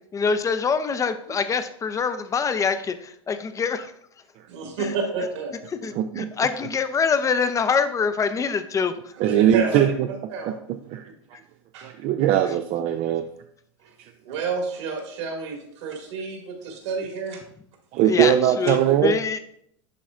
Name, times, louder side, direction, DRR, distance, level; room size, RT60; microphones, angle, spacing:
voice 1, 0.1-3.9 4.8-4.9 5.8-9.1 18.1-19.4, left 5 dB, 20° left, 11 dB, 0.6 m, -25 dB
voice 2, 4.5-5.5 9.2-10.5 11.7-11.9 14.2-17.4, right 4 dB, 70° right, 2 dB, 2.1 m, -30 dB
voice 3, 6.0-6.3 9.2-10.1 10.5-10.6 10.9-11.1 11.8-13.3 17.9-19.2, right 11 dB, 45° right, 7 dB, 0.5 m, -21 dB
11.5 x 4.1 x 2.4 m, 0.69 s
hypercardioid pair, 95°, 15 cm